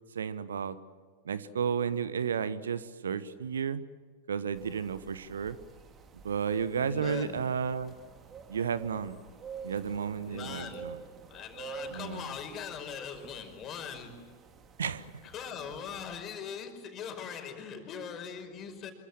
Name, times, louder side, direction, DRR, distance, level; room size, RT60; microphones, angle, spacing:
voice 1, 0.1-0.8 1.2-3.8 4.3-5.6 6.2-7.9 8.5-9.2 9.6-11.0 11.9-12.3 14.8-15.1, right 7 dB, 65° right, 16 dB, 1.2 m, -32 dB
sound 1, 4.5-16.2, right 6 dB, 25° right, 2.7 m, -49 dB
voice 2, 6.8-7.4 10.3-14.3 15.2-18.9, left 7 dB, 30° left, 6 dB, 5.2 m, -41 dB
27.5 x 23.5 x 7.4 m, 1.5 s
figure-of-eight pair, 90°, 0 cm